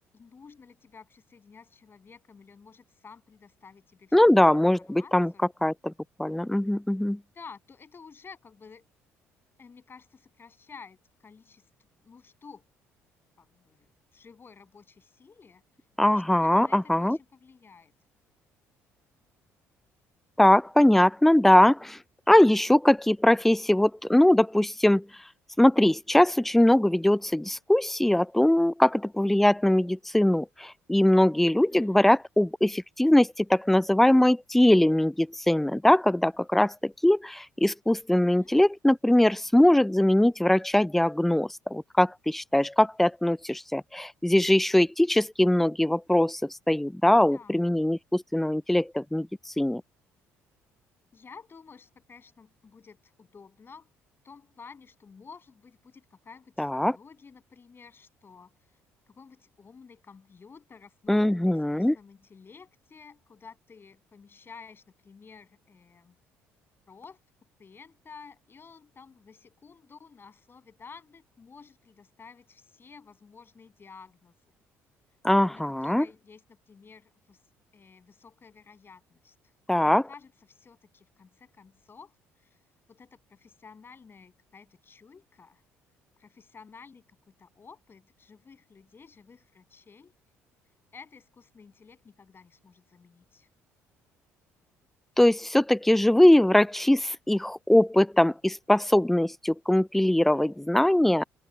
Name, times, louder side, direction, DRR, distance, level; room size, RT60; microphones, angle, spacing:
voice 1, 0.1-5.5 7.3-8.9 9.6-11.6 12.0-12.6 13.4-15.6 16.3-17.9 31.5-32.0 38.1-38.5 47.0-47.6 51.1-53.9 54.2-58.8 59.1-66.2 66.9-67.2 67.6-74.6 75.5-77.4 77.7-79.3 79.7-82.6 82.9-85.6 86.2-90.1 90.9-93.5, left 5 dB, 35° left, 7.9 m, -52 dB
voice 2, 4.1-5.3 5.6-5.9 6.2-7.2 16.0-17.2 20.4-22.0 22.3-25.0 25.6-49.3 49.6-49.8 56.6-56.9 61.1-61.9 75.2-76.1 79.7-80.1 95.2-101.2, left 1 dB, 5° left, 0.3 m, -21 dB
open air
hypercardioid pair, 65°, 6 cm